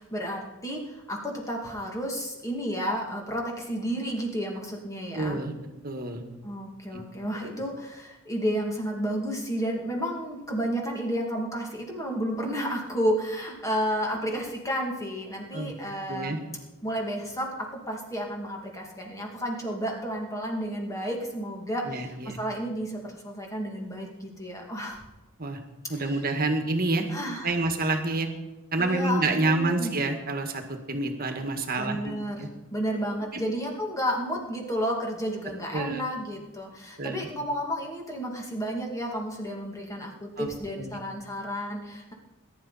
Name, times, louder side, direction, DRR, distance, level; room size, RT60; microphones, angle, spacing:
voice 1, 0.0-5.4 6.4-16.4 16.8-17.5 17.9-25.0 26.0-26.1 27.1-27.6 28.8-29.9 31.8-42.1, equal, 15° left, 0 dB, 2.6 m, -31 dB
voice 2, 5.1-5.5 5.8-6.2 6.9-7.0 7.4-7.5 15.5-15.7 16.1-16.4 21.9-22.4 25.4-25.6 25.9-27.1 27.4-28.3 28.7-32.1 32.4-32.5 33.3-33.4 35.7-36.0 37.0-37.3 40.4-40.5 40.8-41.0, right 2 dB, 45° right, 5 dB, 1.8 m, -28 dB
20.5 x 11.0 x 4.2 m, 1.1 s
head